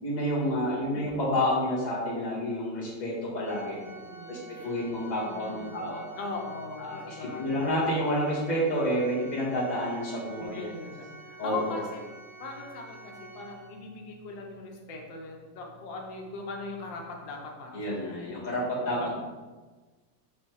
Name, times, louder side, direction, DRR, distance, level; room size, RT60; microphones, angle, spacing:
voice 1, 0.0-3.8 4.3-6.0 6.8-10.7 11.4-11.8 17.7-19.2, equal, 25° left, -6 dB, 1.6 m, -29 dB
voice 2, 0.6-1.1 3.7-4.8 5.3-7.5 10.4-12.0 12.4-18.4 18.8-19.2, left 3 dB, 90° left, 1 dB, 1.6 m, -40 dB
Organ, 3.4-14.0, right 3 dB, 40° right, 1.9 m, -48 dB
5.7 x 4.3 x 4.6 m, 1.3 s
omnidirectional pair, 1.9 m